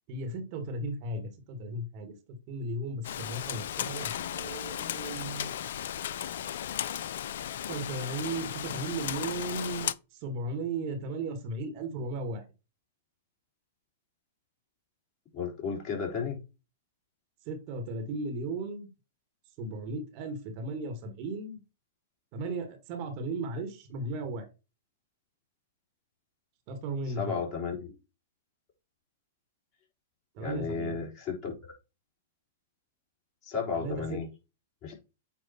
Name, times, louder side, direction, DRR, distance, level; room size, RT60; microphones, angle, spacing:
voice 1, 0.1-5.6 7.7-12.4 17.5-18.9 19.6-21.6 22.3-24.5 26.7-27.4 30.3-31.0 33.7-34.2, right 2 dB, 45° right, 6 dB, 1.9 m, -36 dB
Rain, 3.0-9.9, left 10 dB, 65° left, 0.4 m, -35 dB
voice 2, 15.3-16.4 27.2-28.0 30.4-31.5 33.4-34.3 34.8-35.0, left 5 dB, 35° left, 0 dB, 3.8 m, -33 dB
8.8 x 3.1 x 4.3 m, 0.28 s
hypercardioid pair, 110°, 0 cm